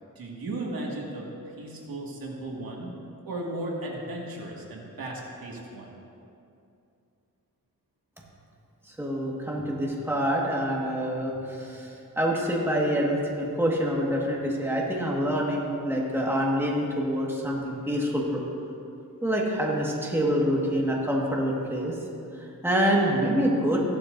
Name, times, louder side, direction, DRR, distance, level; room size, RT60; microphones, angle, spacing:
voice 1, 0.2-1.3 1.6-2.9 3.2-6.0, right 2 dB, 85° right, -2 dB, 2.0 m, -35 dB
voice 2, 8.9-18.4 19.2-22.0 22.3-23.8, equal, 5° right, -3 dB, 1.6 m, -26 dB
15.0 x 12.0 x 2.6 m, 2.6 s
wide cardioid pair, 120°, 35 cm